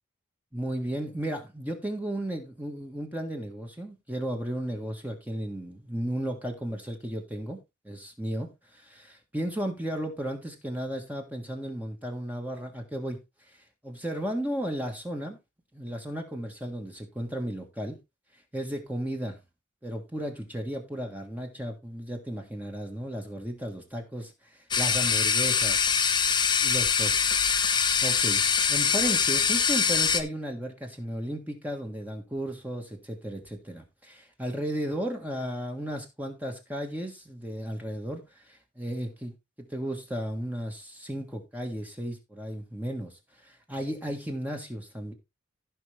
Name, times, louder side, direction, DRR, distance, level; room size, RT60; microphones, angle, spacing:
voice 1, 0.5-7.6 7.8-13.2 13.5-13.6 13.8-15.4 15.7-18.0 18.5-19.4 19.8-25.9 26.6-27.5 28.0-28.4 28.7-39.3 39.6-43.1 43.4-45.1, right 1 dB, 10° right, 1.5 m, -34 dB
sound 1, 24.7-30.2, left 6 dB, 20° left, 0.8 m, -24 dB
15.0 x 5.4 x 3.3 m
head